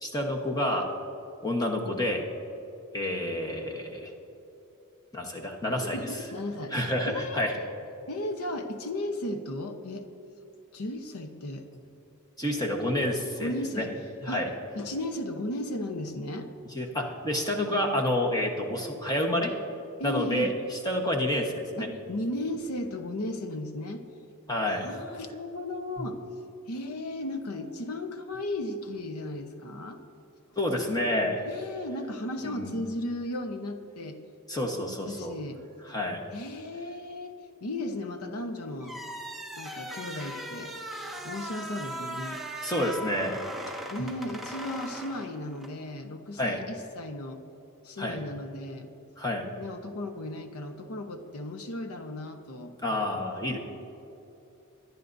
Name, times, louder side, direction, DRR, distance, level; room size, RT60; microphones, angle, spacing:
voice 1, 0.0-0.9 1.4-2.3 2.9-4.1 5.1-6.0 6.7-7.5 12.4-13.8 14.2-14.5 16.7-19.5 20.0-20.5 20.8-21.9 24.5-24.9 30.6-31.4 32.4-32.8 34.5-35.3 35.9-36.2 42.6-43.4 46.4-46.6 48.0-48.2 49.2-49.4 52.8-53.6, left 1 dB, 15° left, 0 dB, 1.1 m, -29 dB
voice 2, 5.8-6.7 7.0-7.8 8.1-10.1 10.7-11.7 13.4-13.9 14.3-14.4 14.7-16.5 20.0-20.5 21.8-24.0 24.7-26.2 26.7-30.0 31.4-34.2 35.1-35.6 36.3-37.3 37.6-39.0 39.6-40.7 41.1-42.4 43.9-47.4 47.8-48.9 49.6-52.7, left 1 dB, 85° left, 7 dB, 0.9 m, -35 dB
sound 1, 38.8-45.8, right 1 dB, ahead, 0.8 m, -39 dB
23.0 x 11.0 x 2.7 m, 2.9 s
head